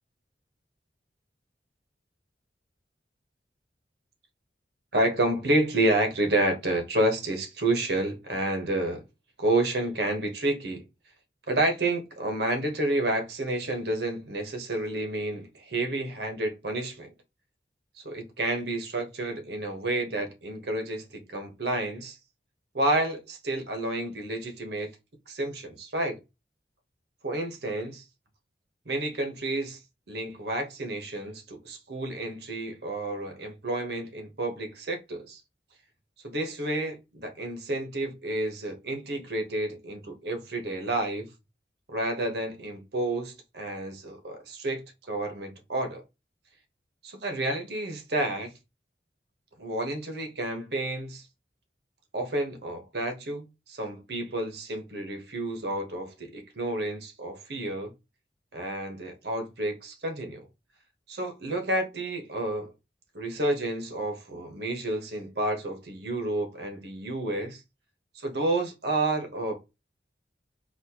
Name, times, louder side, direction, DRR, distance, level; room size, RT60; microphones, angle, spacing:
voice 1, 4.9-9.0 9.4-10.8 11.5-17.1 18.0-22.2 22.7-24.9 25.3-26.2 27.2-28.0 28.9-29.8 30.1-35.4 36.2-41.3 41.9-46.0 47.0-48.5 49.6-51.2 52.1-57.9 58.5-60.5 61.1-62.7 63.1-67.6 68.2-69.6, right 1 dB, 70° right, 1.1 m, -30 dB
4.2 x 2.5 x 2.8 m
head